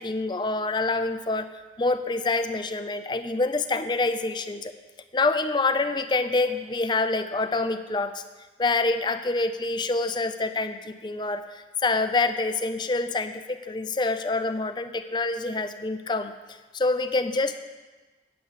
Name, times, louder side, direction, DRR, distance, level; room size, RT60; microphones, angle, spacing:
voice 1, 0.0-4.7 5.1-8.2 8.6-17.6, left 3 dB, 25° left, 10 dB, 0.5 m, -26 dB
9.4 x 8.2 x 7.3 m, 1.2 s
head